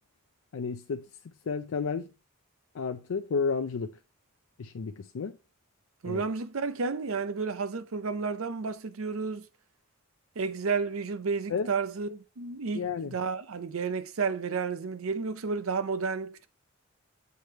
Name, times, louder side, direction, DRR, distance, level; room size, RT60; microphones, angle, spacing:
voice 1, 0.5-2.1 2.7-4.0 4.6-5.4 6.0-6.2 11.5-11.7 12.7-13.2, left 5 dB, 75° left, 0.4 m, -32 dB
voice 2, 6.0-9.5 10.4-16.5, right 5 dB, 75° right, 0.6 m, -31 dB
7.8 x 3.4 x 4.3 m
head